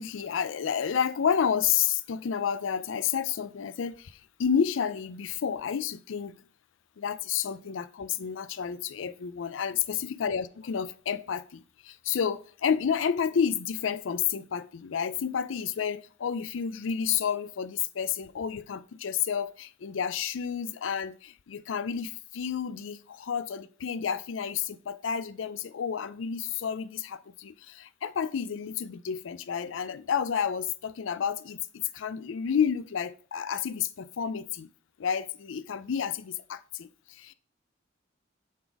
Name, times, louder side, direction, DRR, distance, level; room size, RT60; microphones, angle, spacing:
voice 1, 0.0-6.4 7.0-9.8 10.2-34.7 35.0-37.3, left 7 dB, 85° left, 0.4 m, -30 dB
7.2 x 4.0 x 4.7 m
head